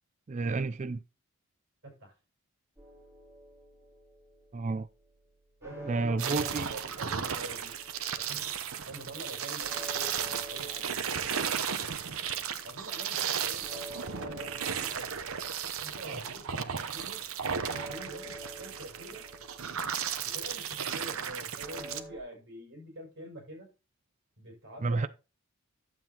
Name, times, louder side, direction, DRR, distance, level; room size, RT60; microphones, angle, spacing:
voice 1, 0.3-1.0 4.5-4.9 5.9-6.7 24.8-25.1, right 3 dB, 30° right, 0.4 m, -30 dB
sound 1, 2.8-22.2, right 1 dB, 10° right, 2.6 m, -50 dB
voice 2, 5.6-7.7 8.2-11.6 12.6-15.1 15.8-17.2 17.7-19.2 20.2-23.7 24.4-25.1, right 1 dB, 55° right, 6.0 m, -46 dB
sound 2, 6.2-22.0, right 7 dB, 70° right, 0.8 m, -35 dB
11.5 x 7.6 x 2.8 m
head